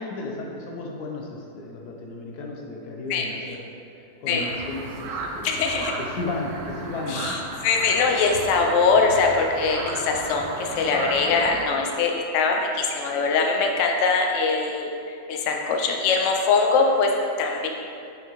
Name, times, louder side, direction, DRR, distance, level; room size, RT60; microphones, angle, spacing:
voice 1, 0.0-3.6 3.9-5.6 6.0-7.4, left 2 dB, 65° left, 0 dB, 1.2 m, -34 dB
sound 1, 4.4-11.6, right 3 dB, 65° right, 1.0 m, -35 dB
voice 2, 5.4-5.9 7.1-7.4 7.6-17.1 17.4-17.7, left 4 dB, 90° left, 2 dB, 0.6 m, -22 dB
7.4 x 4.2 x 3.1 m, 2.6 s
omnidirectional pair, 2.0 m